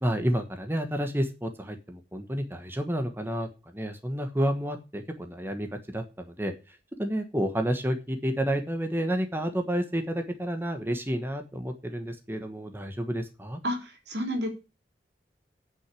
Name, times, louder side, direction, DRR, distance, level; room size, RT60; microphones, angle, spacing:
voice 1, 0.0-3.5 3.7-5.7 5.9-13.6, equal, 15° right, 6 dB, 1.3 m, -30 dB
voice 2, 13.6-14.5, equal, 80° right, 4 dB, 3.4 m, -30 dB
9.1 x 6.6 x 8.4 m, 0.30 s
head